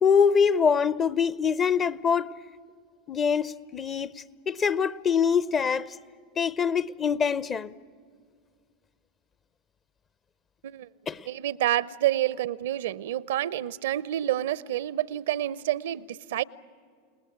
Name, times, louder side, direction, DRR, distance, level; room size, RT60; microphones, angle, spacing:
voice 1, 0.0-2.3 3.1-5.9 6.4-7.7 11.1-11.3, left 6 dB, 30° left, 0.7 m, -24 dB
voice 2, 11.3-16.4, right 13 dB, 65° right, 0.6 m, -28 dB
30.0 x 19.0 x 8.5 m
figure-of-eight pair, 85°, 0 cm